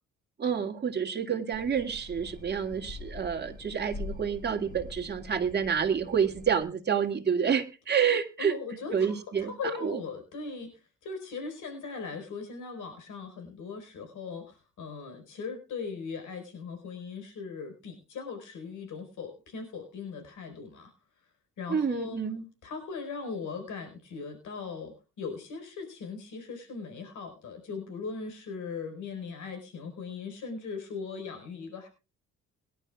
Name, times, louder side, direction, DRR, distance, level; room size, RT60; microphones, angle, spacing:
voice 1, 0.4-8.5 8.9-9.5 9.8-10.0 21.7-22.4, right 7 dB, 35° right, 3 dB, 2.2 m, -28 dB
sound 1, 1.5-6.6, left 3 dB, 25° left, 6.1 m, -44 dB
voice 2, 8.4-21.2 21.6-22.2 22.6-31.9, left 5 dB, 75° left, 7 dB, 4.8 m, -39 dB
22.5 x 11.5 x 2.4 m, 0.32 s
cardioid pair, 90°, 30 cm